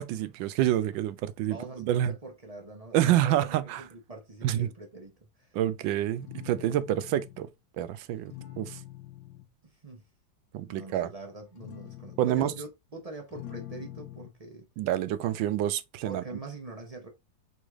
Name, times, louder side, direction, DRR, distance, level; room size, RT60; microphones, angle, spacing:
voice 1, 0.0-2.1 2.9-3.8 4.4-4.7 5.5-7.5 7.8-8.8 10.5-11.1 12.2-12.5 14.8-16.2, right 12 dB, 85° right, 1.3 m, -28 dB
voice 2, 1.4-5.6 9.6-10.1 10.7-14.7 16.0-17.1, right 2 dB, 45° right, 0.5 m, -43 dB
sound 1, 6.2-7.5 8.3-9.5 11.4-12.6 13.1-14.4, left 14 dB, 80° left, 1.3 m, -45 dB
4.1 x 3.2 x 3.5 m
omnidirectional pair, 2.0 m